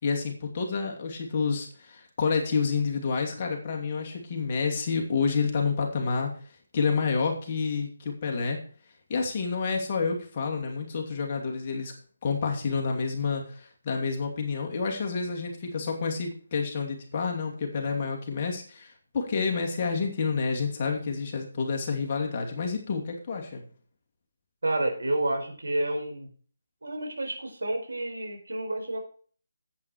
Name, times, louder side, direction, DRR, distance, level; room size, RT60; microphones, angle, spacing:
voice 1, 0.0-6.3 6.7-8.6 9.1-11.9 12.2-23.6, left 5 dB, 35° left, 1 dB, 2.7 m, -29 dB
voice 2, 24.6-26.3 26.8-29.0, right 1 dB, 70° right, 3 dB, 4.5 m, -29 dB
10.5 x 8.6 x 4.7 m, 0.43 s
figure-of-eight pair, 150°, 0 cm